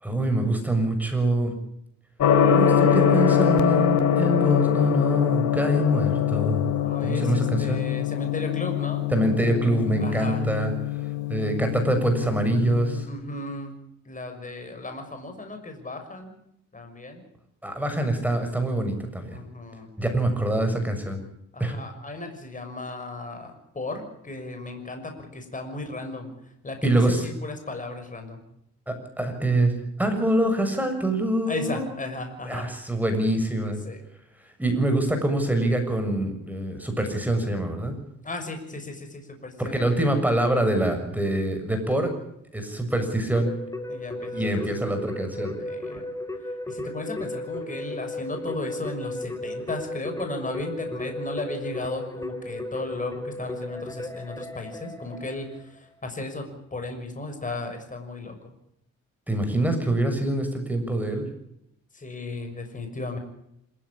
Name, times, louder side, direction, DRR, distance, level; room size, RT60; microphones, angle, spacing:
voice 1, 0.0-1.5 2.5-6.7 7.0-7.8 9.1-11.0 11.3-13.1 17.6-19.4 20.0-21.2 21.6-21.8 26.8-27.3 28.9-29.7 30.0-32.0 32.4-33.8 34.6-37.9 39.6-42.1 42.5-43.5 44.3-45.6 59.3-61.3, right 1 dB, 5° right, 5 dB, 6.9 m, -25 dB
Gong, 2.2-13.0, left 9 dB, 65° left, 3.1 m, -23 dB
voice 2, 6.8-9.1 10.0-10.4 13.1-13.8 14.0-16.3 16.7-17.2 19.3-19.9 21.5-26.3 26.6-28.4 31.5-32.7 33.8-34.0 38.2-39.9 43.9-44.6 45.5-46.1 46.7-58.5 61.9-63.2, left 2 dB, 25° left, 6 dB, 6.3 m, -35 dB
Keyboard (musical), 43.4-55.8, left 1 dB, 10° left, 3.5 m, -35 dB
26.5 x 15.5 x 8.8 m, 0.75 s
cardioid pair, 90°, 30 cm